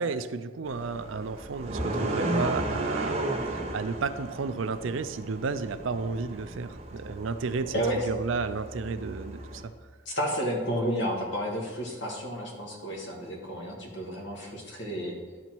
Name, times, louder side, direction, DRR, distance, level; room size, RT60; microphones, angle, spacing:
voice 1, 0.0-3.3 3.5-9.7, right 4 dB, 80° right, 11 dB, 0.5 m, -32 dB
sound 1, 0.7-9.6, right 1 dB, 30° right, 0.9 m, -34 dB
voice 2, 10.1-15.1, equal, 70° left, -1 dB, 1.8 m, -31 dB
12.0 x 4.1 x 4.5 m, 1.5 s
head